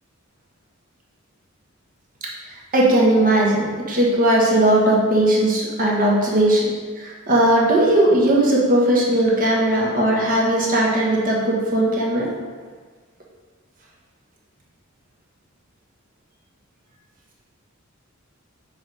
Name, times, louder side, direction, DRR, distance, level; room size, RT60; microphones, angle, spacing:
voice 1, 2.7-6.7 7.0-12.3, right 1 dB, 40° right, -3 dB, 1.3 m, -18 dB
6.2 x 4.1 x 4.8 m, 1.5 s
head